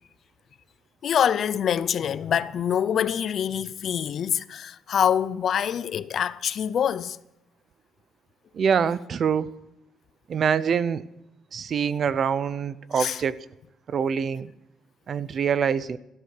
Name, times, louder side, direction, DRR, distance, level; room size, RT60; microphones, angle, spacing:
voice 1, 1.0-7.2 13.0-13.2, left 8 dB, 45° left, 0.6 m, -25 dB
voice 2, 8.5-9.5 10.3-11.1 11.5-13.4 13.9-14.5 15.1-16.0, right 7 dB, 40° right, 0.6 m, -25 dB
16.5 x 13.5 x 6.6 m
cardioid pair, 165°, 0 cm